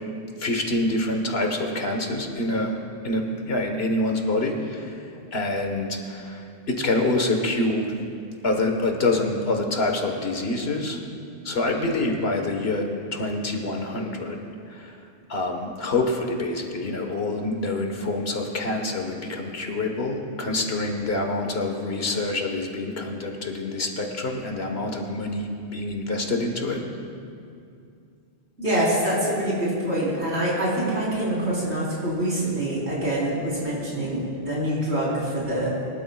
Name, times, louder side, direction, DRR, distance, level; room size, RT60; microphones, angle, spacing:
voice 1, 0.4-2.8 3.0-5.0 5.3-8.0 8.4-11.0 11.4-14.4 14.7-15.0 15.3-26.8, left 2 dB, 65° left, 3 dB, 1.6 m, -26 dB
voice 2, 28.6-35.7, right 1 dB, 80° right, -7 dB, 4.3 m, -25 dB
23.0 x 13.0 x 2.4 m, 2.4 s
omnidirectional pair, 1.1 m